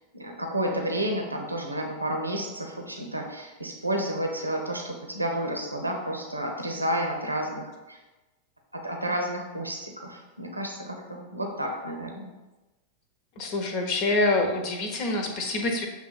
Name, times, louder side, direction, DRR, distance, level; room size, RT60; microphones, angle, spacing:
voice 1, 0.1-8.0 8.7-12.3, right 1 dB, 85° right, 2 dB, 0.8 m, -31 dB
voice 2, 13.4-15.9, left 2 dB, 45° left, 3 dB, 1.0 m, -26 dB
7.2 x 3.0 x 5.6 m, 1.1 s
figure-of-eight pair, 90°, 0 cm